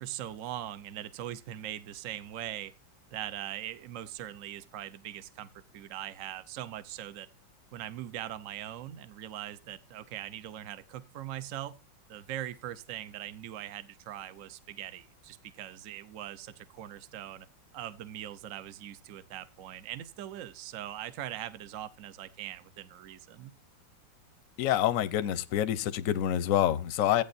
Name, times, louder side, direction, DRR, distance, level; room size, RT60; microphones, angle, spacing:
voice 1, 0.0-2.7 3.1-7.3 7.7-11.8 12.1-17.5 17.7-23.5, right 12 dB, 60° right, 0.9 m, -41 dB
voice 2, 24.6-27.2, left 11 dB, 60° left, 0.9 m, -27 dB
15.0 x 8.9 x 2.6 m
omnidirectional pair, 2.0 m